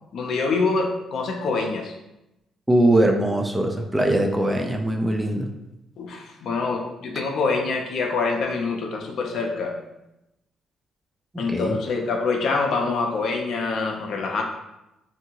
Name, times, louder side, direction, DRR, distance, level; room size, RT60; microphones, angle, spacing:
voice 1, 0.1-1.9 6.0-9.7 11.4-14.4, left 4 dB, 65° left, 2 dB, 0.5 m, -25 dB
voice 2, 2.7-5.5 11.3-11.8, right 1 dB, 15° right, 3 dB, 0.4 m, -21 dB
2.7 x 2.7 x 2.8 m, 0.91 s
cardioid pair, 90°, 0 cm